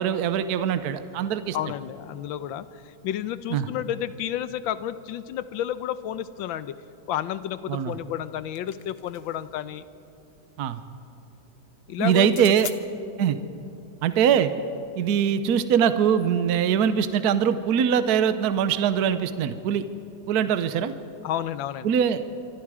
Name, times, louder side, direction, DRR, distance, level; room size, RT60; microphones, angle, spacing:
voice 1, 0.0-1.6 3.5-3.7 7.7-7.9 10.6-10.8 12.0-12.7 13.2-13.4 14.0-14.5 15.0-19.8 20.3-20.9 21.8-22.2, right 8 dB, 60° right, 11 dB, 1.2 m, -22 dB
voice 2, 1.5-6.8 7.1-9.8 11.9-12.3 21.2-21.9, left 11 dB, 85° left, 14 dB, 1.5 m, -31 dB
sound 1, 8.2-9.5 12.2-12.8, left 7 dB, 50° left, 0.8 m, -40 dB
26.0 x 24.5 x 4.9 m, 2.6 s
omnidirectional pair, 2.1 m